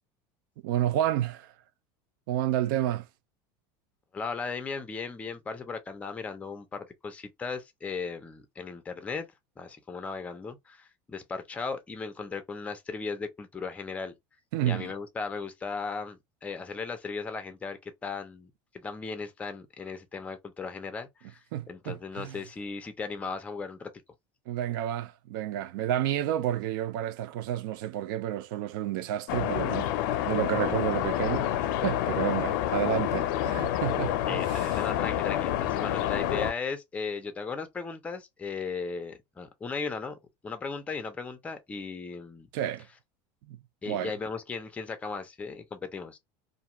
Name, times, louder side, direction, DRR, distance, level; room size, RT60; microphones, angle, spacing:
voice 1, 0.6-1.5 2.3-3.1 14.5-14.9 21.5-22.4 24.5-29.9 30.3-34.8 42.5-42.9 43.4-43.6 43.9-44.1, right 12 dB, 75° right, 0.4 m, -30 dB
voice 2, 4.1-9.3 9.6-14.1 14.6-23.9 34.2-40.2 40.4-42.5 43.8-46.2, left 4 dB, 10° left, 0.5 m, -37 dB
sound 1, 29.3-36.5, left 12 dB, 75° left, 0.5 m, -28 dB
2.5 x 2.3 x 2.9 m
cardioid pair, 160°, 11 cm